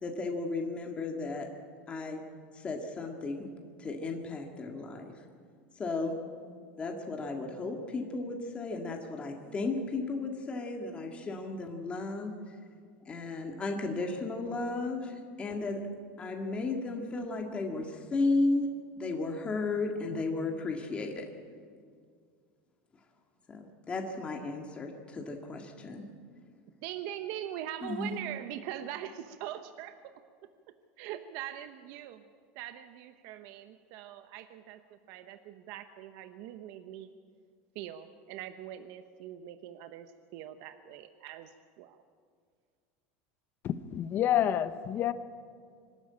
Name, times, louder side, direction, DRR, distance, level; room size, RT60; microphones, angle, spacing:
voice 1, 0.0-1.5 1.9-2.2 2.6-3.5 3.8-5.1 5.8-6.2 6.8-12.3 13.1-15.8 16.2-18.7 19.0-21.3 23.5-26.0 27.8-28.2, left 3 dB, 20° left, 2 dB, 1.9 m, -34 dB
voice 2, 26.8-30.1 31.0-32.2 32.5-37.1 37.7-42.0, right 11 dB, 60° right, 9 dB, 0.9 m, -42 dB
voice 3, 43.6-45.1, left 10 dB, 35° left, 13 dB, 0.9 m, -28 dB
24.0 x 13.0 x 8.8 m, 2.1 s
supercardioid pair, 145°, 6 cm